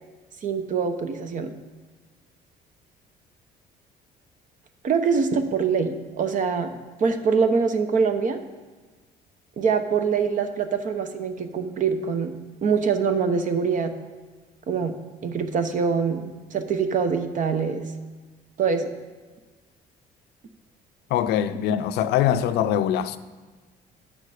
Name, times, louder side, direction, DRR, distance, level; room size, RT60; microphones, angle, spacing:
voice 1, 0.4-1.5 4.8-6.7 7.0-8.4 9.6-12.3 12.6-13.9 14.7-17.9 18.6-18.9, right 5 dB, 50° right, 0.9 m, -24 dB
voice 2, 21.1-23.2, left 10 dB, 80° left, 0.5 m, -23 dB
9.1 x 6.5 x 4.9 m
cardioid pair, 110°, 17 cm